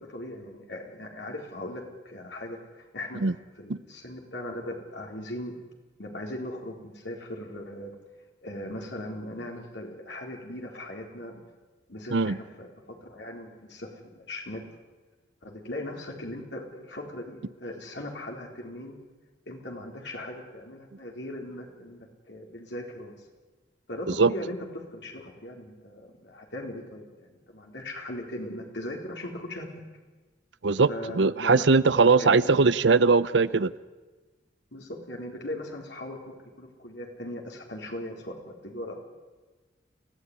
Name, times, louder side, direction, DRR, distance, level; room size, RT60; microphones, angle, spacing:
voice 1, 0.0-3.2 3.6-5.5 6.0-7.9 8.4-11.4 11.9-12.7 13.0-14.6 15.4-19.0 19.5-23.3 23.9-29.7 30.9-31.7 32.2-32.5 34.7-38.3 38.6-39.0, left 1 dB, 70° left, 1 dB, 4.3 m, -39 dB
voice 2, 31.2-33.7, right 4 dB, 75° right, 16 dB, 0.7 m, -20 dB
28.0 x 16.0 x 9.8 m, 1.3 s
head